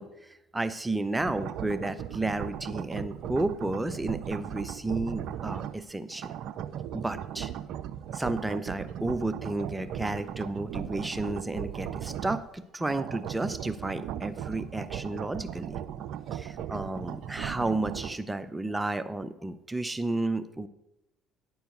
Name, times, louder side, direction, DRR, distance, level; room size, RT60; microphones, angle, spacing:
voice 1, 0.0-6.3 6.9-7.5 8.1-15.8 16.3-20.7, right 2 dB, 15° right, 12 dB, 0.6 m, -32 dB
sound 1, 1.2-5.8 6.1-12.5 12.8-18.2, right 10 dB, 60° right, 0.4 m, -37 dB
9.9 x 4.6 x 6.5 m, 0.88 s
hypercardioid pair, 60°, 0 cm